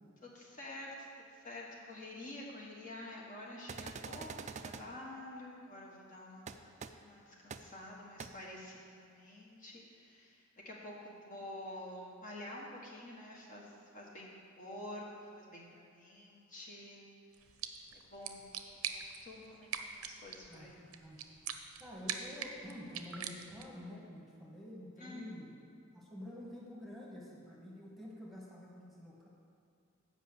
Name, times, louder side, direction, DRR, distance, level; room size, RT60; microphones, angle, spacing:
voice 1, 0.2-1.1 1.3-14.3 14.6-17.0 17.9-18.4 18.7-20.7 25.0-25.3, left 1 dB, 40° left, -3 dB, 1.3 m, -49 dB
sound 1, 3.7-4.8 6.5-6.6 6.8-6.9 7.5-7.6 8.2-8.3, right 5 dB, 35° right, 0.4 m, -44 dB
sound 2, 17.3-23.8, right 8 dB, 90° right, 0.6 m, -44 dB
voice 2, 20.5-21.2 21.8-25.6 25.9-29.3, left 1 dB, ahead, -5 dB, 1.5 m, -49 dB
8.2 x 5.3 x 7.8 m, 2.5 s
head